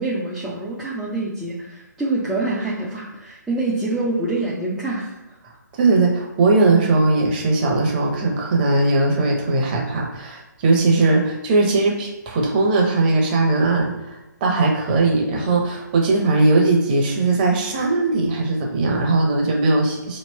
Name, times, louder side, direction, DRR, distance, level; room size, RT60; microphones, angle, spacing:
voice 1, 0.0-5.2, right 2 dB, 5° right, -8 dB, 0.4 m, -25 dB
voice 2, 5.8-20.2, right 3 dB, 25° right, 0 dB, 0.8 m, -19 dB
3.1 x 2.8 x 4.2 m, 1.0 s
figure-of-eight pair, 135°, 10 cm